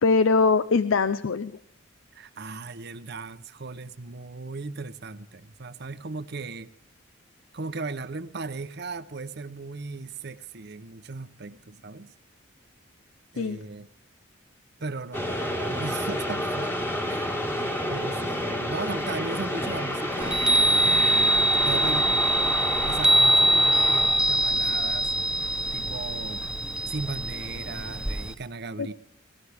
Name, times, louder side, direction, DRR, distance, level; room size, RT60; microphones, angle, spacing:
voice 1, 0.0-1.6 13.4-13.6 28.8-28.9, left 4 dB, 75° left, 14 dB, 0.5 m, -22 dB
voice 2, 2.1-6.7 7.5-12.1 13.3-13.9 14.8-17.4 17.9-20.4 21.0-22.5 22.9-25.1 25.7-26.5 26.9-28.9, right 3 dB, 55° right, 13 dB, 0.8 m, -37 dB
sound 1, 15.1-25.4, equal, 10° left, 1.8 m, -30 dB
Chime, 20.2-28.3, right 1 dB, 5° right, 0.5 m, -23 dB
18.0 x 17.5 x 3.5 m, 0.70 s
head